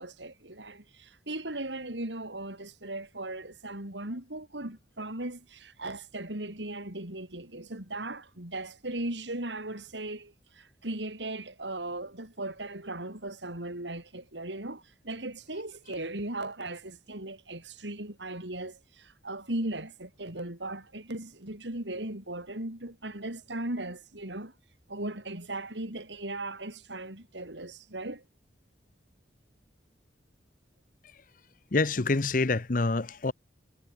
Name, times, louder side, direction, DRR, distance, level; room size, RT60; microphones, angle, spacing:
voice 1, 0.0-24.5 24.9-28.2, right 2 dB, 85° right, 5.0 m, -38 dB
voice 2, 31.7-33.3, left 3 dB, 50° left, 0.8 m, -26 dB
head